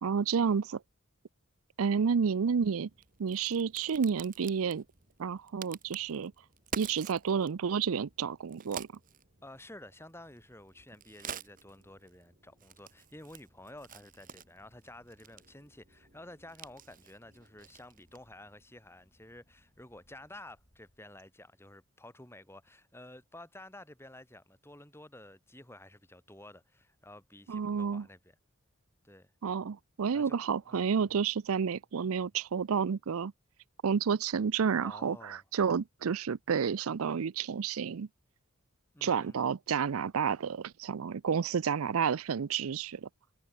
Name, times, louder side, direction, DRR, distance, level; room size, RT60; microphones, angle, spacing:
voice 1, 0.0-0.8 1.8-2.9 3.2-4.8 5.2-6.3 6.8-8.9 27.5-28.0 29.4-33.3 33.8-38.1 39.0-43.1, right 6 dB, 85° right, 0.5 m, -30 dB
Crack, 2.3-18.4, right 6 dB, 40° right, 2.3 m, -49 dB
voice 2, 9.4-28.4 29.0-29.3 30.1-31.1 34.8-35.4 38.9-39.4, left 1 dB, 10° left, 5.5 m, -52 dB
Boat Water vehicle / Engine, 12.8-21.7, equal, 30° left, 7.9 m, -71 dB
head